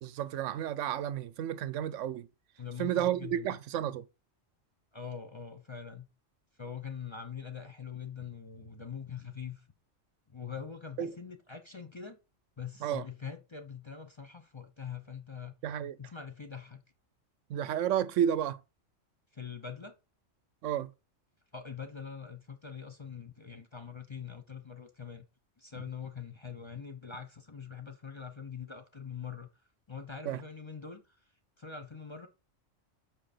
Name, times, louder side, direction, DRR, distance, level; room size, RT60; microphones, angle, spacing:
voice 1, 0.0-2.3 2.8-4.0 11.0-11.1 12.8-13.0 15.6-16.0 17.5-18.6 20.6-20.9 30.3-30.4, right 10 dB, 75° right, 0.9 m, -31 dB
voice 2, 2.6-3.6 4.9-6.1 6.6-9.6 10.3-12.2 12.6-15.5 16.0-16.8 19.3-19.9 21.5-25.3 25.6-29.5 29.9-31.2 31.6-32.3, left 7 dB, 25° left, 0.7 m, -43 dB
7.7 x 5.2 x 4.3 m
omnidirectional pair, 1.3 m